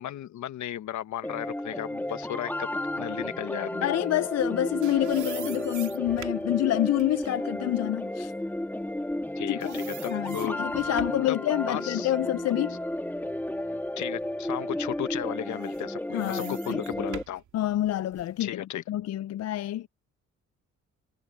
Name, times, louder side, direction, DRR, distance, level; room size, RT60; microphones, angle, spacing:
voice 1, 0.0-2.7 3.0-3.9 9.4-10.7 11.3-11.4 11.7-12.1 14.0-17.4 18.4-18.8, left 12 dB, 70° left, 1.4 m, -35 dB
sound 1, 1.2-17.2, left 1 dB, 5° left, 1.8 m, -33 dB
voice 2, 3.8-8.3 9.5-9.8 10.1-12.8 16.1-16.8 17.5-18.6 18.9-19.9, left 13 dB, 55° left, 0.5 m, -28 dB
sound 2, 4.4-9.3 9.6-11.3 11.8-13.8 14.2-14.4 15.4-18.4, right 11 dB, 75° right, 2.3 m, -46 dB
cardioid pair, 90°, 30 cm